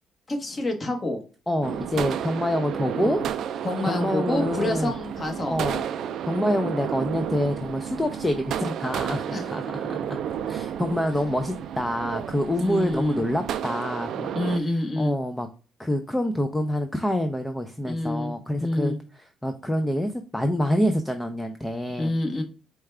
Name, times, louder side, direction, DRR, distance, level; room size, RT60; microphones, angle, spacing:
voice 1, 0.3-1.2 3.0-3.2 3.6-5.6 9.3-9.4 12.6-13.2 14.3-15.2 17.8-19.0 22.0-22.4, left 1 dB, 30° left, 4 dB, 1.1 m, -28 dB
voice 2, 1.5-3.2 3.5-4.9 5.5-10.2 10.5-14.3 15.0-15.5 15.8-18.9 19.4-22.1, left 1 dB, 10° left, 6 dB, 0.4 m, -27 dB
sound 1, 1.6-14.6, right 9 dB, 75° right, 0.3 m, -31 dB
4.6 x 2.3 x 3.2 m, 0.36 s
cardioid pair, 90°, 0 cm